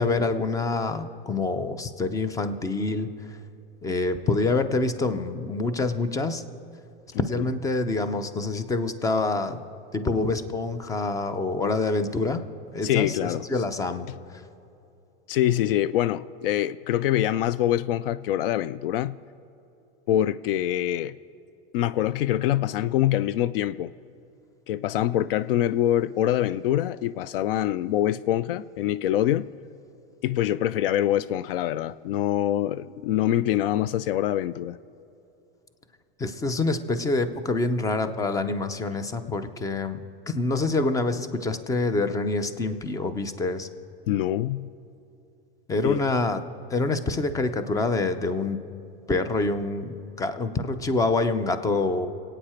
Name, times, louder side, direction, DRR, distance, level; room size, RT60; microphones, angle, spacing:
voice 1, 0.0-3.1 3.8-6.4 7.3-9.6 9.9-12.5 12.7-14.1 36.2-40.0 40.3-43.7 45.7-46.4 46.7-48.6 49.1-52.1, left 3 dB, 10° left, 10 dB, 0.7 m, -26 dB
voice 2, 7.1-7.5 12.8-13.5 15.3-19.1 20.1-21.1 21.7-23.9 24.7-29.5 30.2-34.8 44.1-44.7 45.8-46.1, left 12 dB, 70° left, 17 dB, 0.4 m, -25 dB
26.0 x 9.0 x 4.4 m, 2.8 s
supercardioid pair, 130°, 29 cm